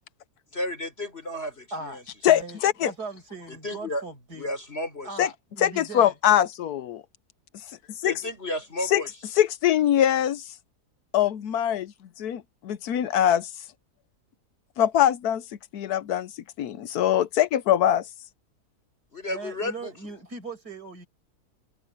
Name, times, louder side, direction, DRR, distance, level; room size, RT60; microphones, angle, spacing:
voice 1, 0.5-2.1 3.5-4.0 4.4-5.2 8.0-9.1 19.1-19.9, left 1 dB, 40° left, 4.4 m, -33 dB
voice 2, 1.7-4.5 5.0-6.1 19.3-21.1, right 3 dB, 85° right, 6.4 m, -39 dB
voice 3, 2.2-2.9 5.2-5.3 5.6-7.0 8.0-8.2 8.9-9.0 9.4-10.4 11.1-11.9 12.2-12.4 12.7-13.5 14.8-15.4 15.7-16.3 16.6-18.1, left 11 dB, 75° left, 1.3 m, -22 dB
omnidirectional pair, 1.7 m